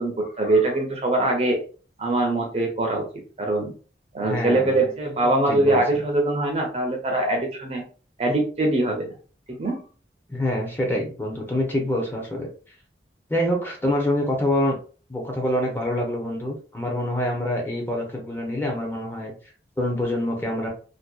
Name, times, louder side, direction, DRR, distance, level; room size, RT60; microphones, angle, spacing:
voice 1, 0.0-1.6 2.0-3.1 3.4-3.7 4.1-7.8 8.2-9.1 9.5-9.8, right 2 dB, 35° right, 2 dB, 0.5 m, -23 dB
voice 2, 4.2-4.9 5.5-5.8 10.3-12.5 13.3-14.8 15.1-19.3 19.8-20.7, left 1 dB, 10° left, 0 dB, 0.6 m, -26 dB
2.6 x 2.1 x 2.2 m, 0.38 s
head